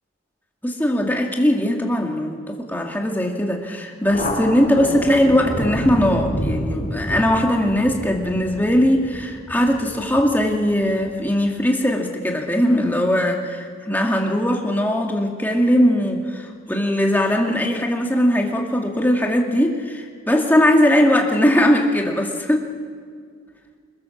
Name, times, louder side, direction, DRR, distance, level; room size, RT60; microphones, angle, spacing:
voice 1, 0.6-22.7, equal, 10° left, 1 dB, 2.3 m, -20 dB
Thunder, 4.0-11.1, equal, 40° left, 4.9 m, -29 dB
28.5 x 21.0 x 7.2 m, 2.1 s
head